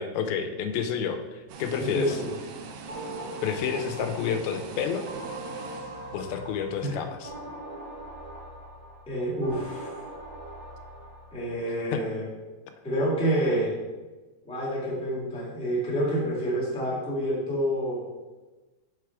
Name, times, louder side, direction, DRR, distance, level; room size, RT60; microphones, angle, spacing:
voice 1, 0.0-2.2 3.4-5.1 6.1-7.3 11.8-12.0, left 7 dB, 85° left, 7 dB, 2.5 m, -30 dB
sound 1, 1.5-6.7, right 5 dB, 80° right, 2.3 m, -43 dB
voice 2, 1.8-2.3 6.8-6.9 9.1-9.9 11.3-12.2 12.8-13.7 14.4-18.0, right 1 dB, 5° left, -7 dB, 1.1 m, -28 dB
sound 2, 2.9-11.6, right 1 dB, 35° right, 1.5 m, -41 dB
6.7 x 4.8 x 4.7 m, 1.2 s
omnidirectional pair, 4.3 m